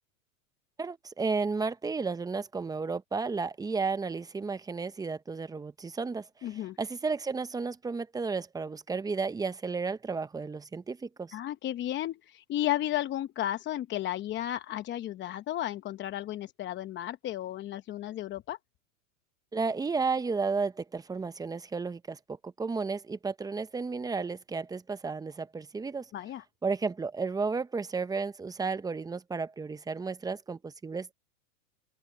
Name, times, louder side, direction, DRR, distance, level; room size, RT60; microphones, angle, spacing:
voice 1, 0.8-11.4 19.5-26.1 26.6-31.1, right 4 dB, 10° right, 0.8 m, -33 dB
voice 2, 6.4-6.8 11.3-18.6 26.1-26.4, left 13 dB, 25° left, 0.8 m, -33 dB
open air
hypercardioid pair, 125°, 44 cm